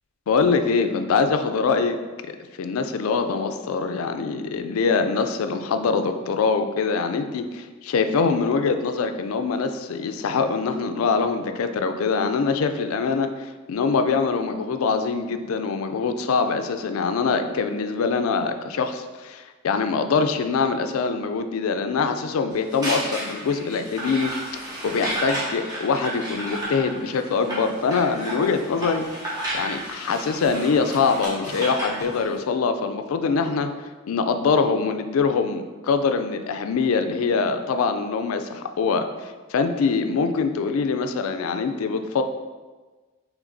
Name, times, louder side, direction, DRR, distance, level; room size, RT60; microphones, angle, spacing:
voice 1, 0.3-29.1 29.5-33.7 34.1-42.2, left 5 dB, 85° left, 8 dB, 0.4 m, -24 dB
sound 1, 22.5-32.3, right 1 dB, 20° right, 1.1 m, -32 dB
6.3 x 3.1 x 2.6 m, 1.3 s
head